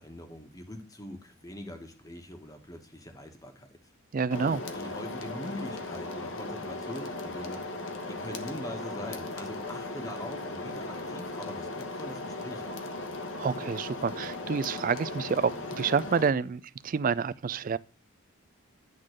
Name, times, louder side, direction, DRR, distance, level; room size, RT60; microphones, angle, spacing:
voice 1, 0.0-3.8 4.4-7.6 8.1-12.8, left 1 dB, 15° left, 1.2 m, -43 dB
voice 2, 4.1-4.6 13.3-17.8, right 5 dB, 40° right, 0.3 m, -28 dB
sound 1, 4.3-16.3, left 2 dB, 65° left, 1.1 m, -37 dB
10.5 x 3.8 x 6.3 m
head